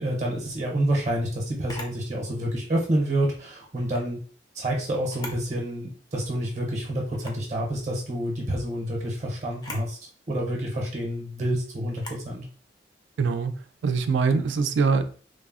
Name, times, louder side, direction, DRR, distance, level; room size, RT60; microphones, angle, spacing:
voice 1, 0.0-4.2 4.5-12.4, right 1 dB, 40° right, 0.6 m, -28 dB
Camera, 1.7-2.0 3.7-4.1 5.0-5.5 5.9-6.0 7.1-7.5 9.5-9.9 11.9-12.3, left 1 dB, 20° left, 0.4 m, -40 dB
voice 2, 13.2-13.5 13.8-15.0, right 5 dB, 85° right, 0.3 m, -23 dB
3.3 x 2.0 x 2.3 m
head